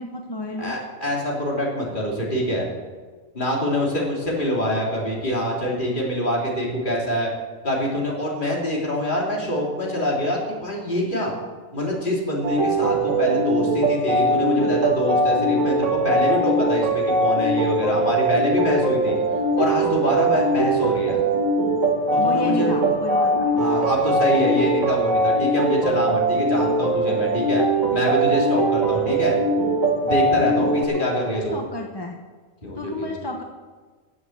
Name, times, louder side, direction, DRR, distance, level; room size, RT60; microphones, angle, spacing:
voice 1, 0.0-0.7 22.2-23.6 30.9-32.2 32.8-33.4, left 1 dB, 20° left, 2 dB, 0.9 m, -31 dB
voice 2, 0.6-2.7 3.3-7.3 7.6-11.3 11.7-19.2 19.5-21.2 22.1-22.9 23.6-27.6 27.9-29.4 30.0-31.6 32.6-33.1, equal, 35° left, -2 dB, 3.1 m, -25 dB
sound 1, 12.4-30.9, right 1 dB, 75° right, 2.0 m, -21 dB
13.5 x 7.9 x 7.8 m, 1.4 s
omnidirectional pair, 1.4 m